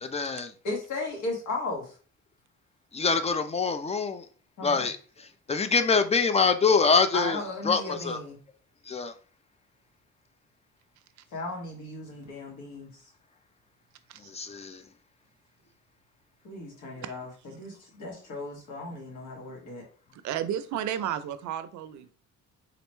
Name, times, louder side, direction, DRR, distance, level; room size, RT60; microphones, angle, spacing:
voice 1, 0.0-0.5 2.9-4.2 4.6-4.9 5.5-7.4 7.7-8.2 8.9-9.1 14.3-14.8, left 4 dB, 20° left, 0.4 m, -24 dB
voice 2, 0.6-1.9 4.6-4.9 7.1-8.4 11.3-12.9 16.4-19.8, left 2 dB, 80° left, 1.5 m, -35 dB
voice 3, 20.1-22.1, right 10 dB, 75° right, 0.5 m, -32 dB
3.8 x 2.1 x 3.0 m
cardioid pair, 90°, 30 cm